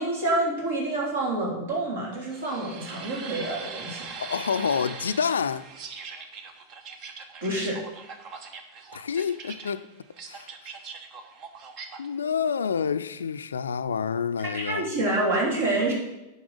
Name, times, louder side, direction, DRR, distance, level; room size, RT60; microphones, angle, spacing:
voice 1, 0.0-4.1 7.4-7.8 14.5-15.9, right 2 dB, 60° right, 3.3 m, -27 dB
sound 1, 2.3-12.1, right 5 dB, 40° right, 1.0 m, -41 dB
voice 2, 4.2-5.7 8.9-9.9 10.3-10.5 12.0-14.9, left 6 dB, 70° left, 0.4 m, -28 dB
9.5 x 5.4 x 6.4 m
figure-of-eight pair, 90°, 0 cm